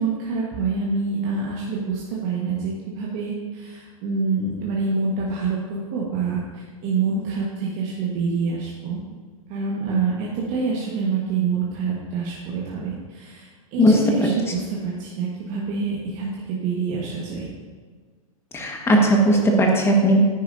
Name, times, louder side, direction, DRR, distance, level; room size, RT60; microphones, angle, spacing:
voice 1, 0.0-9.0 9.5-13.4 13.7-17.5, right 4 dB, 40° right, -4 dB, 1.5 m, -26 dB
voice 2, 13.8-14.3 18.5-20.2, equal, 15° left, 0 dB, 1.6 m, -17 dB
10.0 x 9.7 x 2.7 m, 1.5 s
hypercardioid pair, 105°, 19 cm